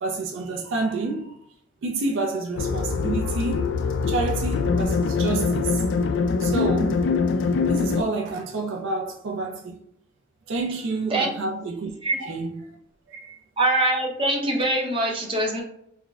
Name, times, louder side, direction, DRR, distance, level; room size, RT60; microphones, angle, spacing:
voice 1, 0.0-1.4 1.8-3.7 4.1-5.8 6.4-7.0 7.7-9.8 10.5-11.9 12.2-12.8 13.1-13.4, right 3 dB, 60° right, 0.4 m, -29 dB
sound 1, 2.6-8.0, left 4 dB, 60° left, 0.3 m, -23 dB
voice 2, 13.6-15.6, right 1 dB, 25° right, 0.7 m, -23 dB
3.9 x 2.1 x 2.3 m
head